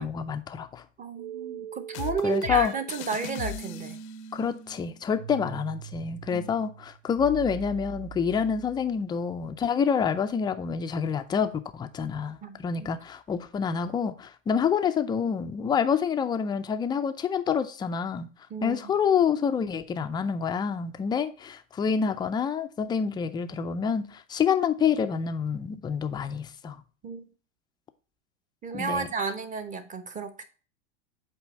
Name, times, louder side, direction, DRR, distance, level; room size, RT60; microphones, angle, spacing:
voice 1, 0.0-0.8 2.2-2.7 4.3-18.3 18.6-26.8 28.7-29.1, left 7 dB, 10° left, 0.4 m, -27 dB
voice 2, 1.0-4.0 6.3-6.5 12.4-12.9 18.5-18.8 27.0-27.3 28.6-30.4, right 5 dB, 20° right, 0.8 m, -32 dB
sound 1, 1.2-9.0, right 9 dB, 55° right, 0.7 m, -42 dB
sound 2, 1.9-4.3, left 16 dB, 60° left, 0.6 m, -38 dB
8.1 x 2.7 x 4.9 m
hypercardioid pair, 95°, 38 cm